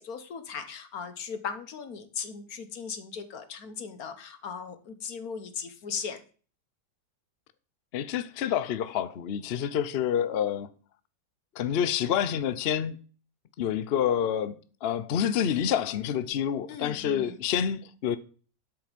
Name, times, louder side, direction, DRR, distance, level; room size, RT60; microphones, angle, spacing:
voice 1, 0.0-6.2 16.7-17.4, left 6 dB, 55° left, 1.6 m, -38 dB
voice 2, 7.9-10.7 11.5-13.0 13.6-18.2, left 9 dB, 80° left, 0.5 m, -28 dB
12.0 x 5.9 x 5.2 m
omnidirectional pair, 1.9 m